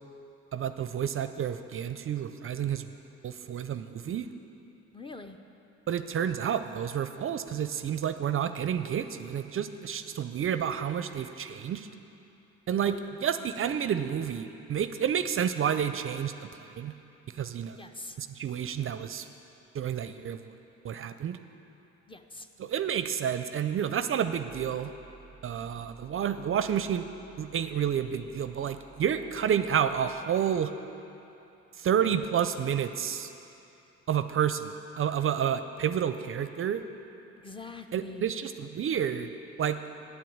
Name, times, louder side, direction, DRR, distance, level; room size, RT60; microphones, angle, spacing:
voice 1, 0.5-2.8 3.2-4.3 5.9-11.9 12.7-16.5 16.8-16.9 17.4-17.8 18.2-19.3 19.7-20.4 20.8-21.4 22.6-24.9 25.4-27.1 27.4-30.7 31.8-33.3 34.1-36.8 37.9-39.3 39.6-39.8, right 8 dB, 45° right, 10 dB, 0.5 m, -30 dB
voice 2, 4.9-5.4 12.7-13.0 17.7-18.2 22.1-22.5 37.4-38.3, left 3 dB, 15° left, 6 dB, 0.6 m, -44 dB
sound 1, 24.3-31.2, right 3 dB, 85° left, 2.4 m, -56 dB
8.5 x 7.6 x 8.7 m, 2.9 s
cardioid pair, 90°, 30 cm